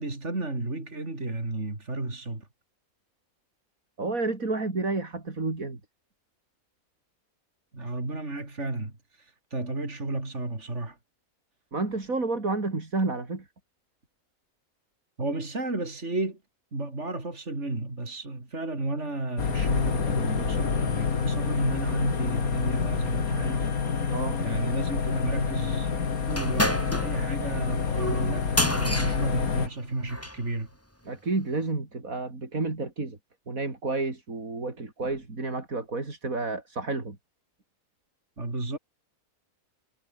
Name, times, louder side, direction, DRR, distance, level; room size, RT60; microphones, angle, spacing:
voice 1, 0.0-2.5 7.7-11.0 15.2-16.4 16.7-23.7 24.0-25.9 26.3-28.5 28.8-30.7 38.4-38.8, right 2 dB, 55° right, 5.0 m, -32 dB
voice 2, 4.0-5.8 11.7-13.4 24.1-24.4 31.1-33.2 33.5-37.2, right 3 dB, 75° right, 4.4 m, -30 dB
sound 1, 19.4-29.7, left 5 dB, 90° left, 2.4 m, -28 dB
sound 2, 26.3-30.4, equal, 10° left, 5.1 m, -30 dB
omnidirectional pair, 1.5 m